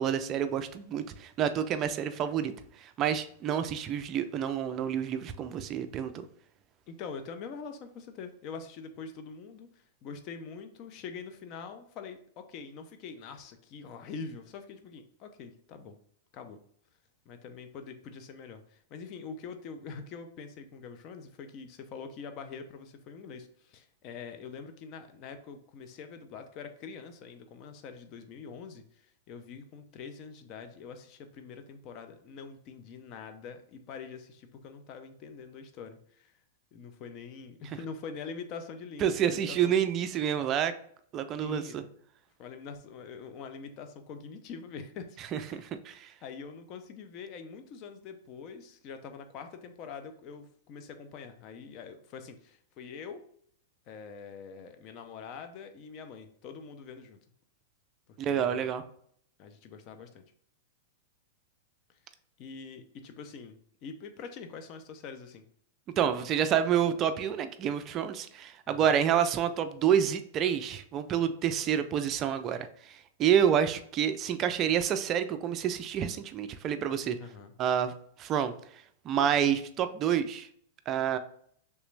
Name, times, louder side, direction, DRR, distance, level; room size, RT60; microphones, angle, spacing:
voice 1, 0.0-2.5 2.8-6.1 39.0-40.7 41.1-41.8 45.3-46.1 58.2-58.8 66.0-77.2 77.6-77.9 78.2-78.5 79.0-80.5 80.9-81.2, right 9 dB, 30° right, 10 dB, 0.3 m, -28 dB
voice 2, 6.9-16.0 16.3-16.6 17.3-36.3 36.7-39.8 41.4-41.8 42.4-45.6 46.2-53.2 53.9-57.2 58.2-58.7 59.4-60.2 62.4-65.4 68.7-68.9 77.2-77.5, left 5 dB, 35° left, 7 dB, 0.5 m, -44 dB
3.3 x 3.0 x 3.2 m, 0.63 s
supercardioid pair, 145°, 0 cm